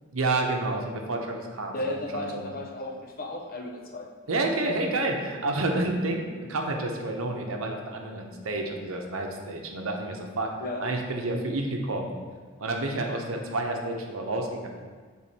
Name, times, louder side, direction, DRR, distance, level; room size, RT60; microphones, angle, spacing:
voice 1, 0.1-2.5 4.3-10.5 10.8-12.1 12.6-14.7, right 2 dB, 75° right, 2 dB, 0.9 m, -29 dB
voice 2, 1.7-4.2 10.6-10.8, left 1 dB, 45° left, 1 dB, 0.7 m, -34 dB
7.7 x 3.9 x 4.1 m, 1.5 s
head